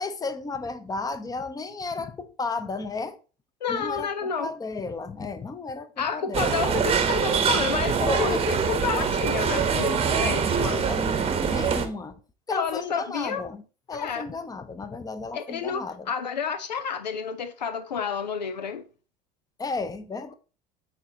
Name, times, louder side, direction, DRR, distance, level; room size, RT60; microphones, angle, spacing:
voice 1, 0.0-3.2 3.7-6.6 8.0-8.4 10.1-10.5 10.8-11.1 11.4-12.2 12.5-13.6 13.9-16.1 19.6-20.3, left 3 dB, 15° left, 0.8 m, -33 dB
voice 2, 3.6-4.5 6.0-10.9 12.5-13.4 13.9-14.3 15.3-18.8, left 6 dB, 85° left, 0.6 m, -30 dB
sound 1, 6.3-11.9, right 6 dB, 25° right, 0.9 m, -24 dB
8.6 x 4.0 x 2.8 m
hypercardioid pair, 70°, 21 cm